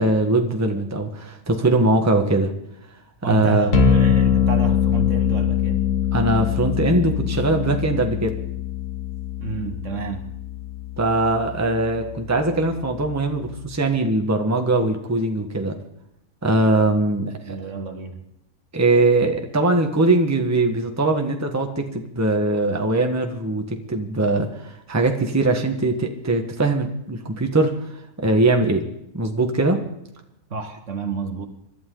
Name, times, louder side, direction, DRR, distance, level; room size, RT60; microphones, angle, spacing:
voice 1, 0.0-2.5 3.2-3.7 6.1-8.3 11.0-15.8 16.4-17.6 18.7-27.9 28.2-28.9 29.1-29.8, right 2 dB, 10° right, 1.3 m, -21 dB
voice 2, 3.2-5.9 9.4-10.2 17.5-18.2 30.5-31.5, right 2 dB, 55° right, 1.7 m, -29 dB
sound 1, 3.7-13.8, left 8 dB, 75° left, 2.2 m, -23 dB
26.0 x 12.0 x 3.9 m
omnidirectional pair, 1.6 m